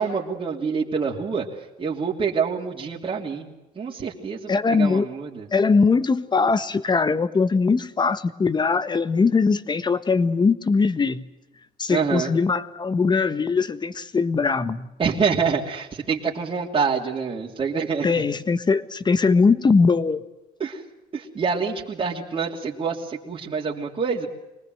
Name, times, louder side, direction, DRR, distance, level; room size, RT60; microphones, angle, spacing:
voice 1, 0.0-1.5 1.8-5.5 11.9-12.3 15.0-18.2 20.6-20.8 21.1-24.3, right 5 dB, 35° right, 3.2 m, -26 dB
voice 2, 4.5-5.1 5.5-11.3 11.8-14.9 18.0-20.2, left 4 dB, 25° left, 1.4 m, -21 dB
25.5 x 19.5 x 8.0 m
cardioid pair, 110°, 17 cm